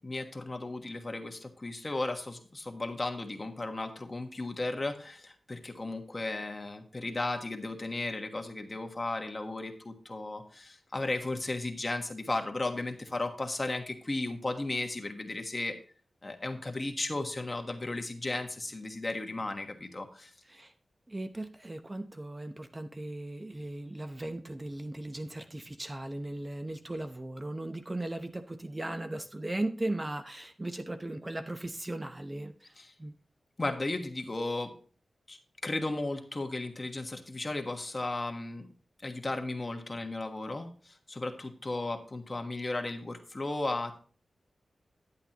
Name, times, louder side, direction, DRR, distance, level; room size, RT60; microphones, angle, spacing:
voice 1, 0.0-15.8 16.2-20.3 32.8-32.9 33.6-34.7 35.3-35.4 35.6-38.7 39.0-44.0, left 2 dB, 35° left, 5 dB, 1.4 m, -35 dB
voice 2, 21.1-32.7 33.0-33.1, right 1 dB, 25° right, 8 dB, 0.8 m, -37 dB
10.5 x 8.2 x 2.9 m, 0.42 s
cardioid pair, 50°, 0 cm